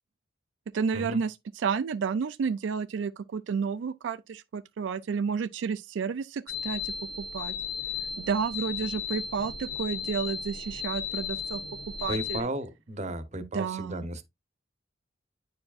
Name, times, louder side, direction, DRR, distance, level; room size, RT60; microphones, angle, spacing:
voice 1, 0.7-7.5 8.2-11.6 12.0-12.5 13.5-14.1, right 6 dB, 80° right, 0.4 m, -31 dB
sound 1, 6.5-12.4, left 6 dB, 70° left, 1.2 m, -35 dB
voice 2, 12.1-14.2, right 1 dB, 40° right, 0.8 m, -34 dB
9.5 x 4.7 x 2.4 m
head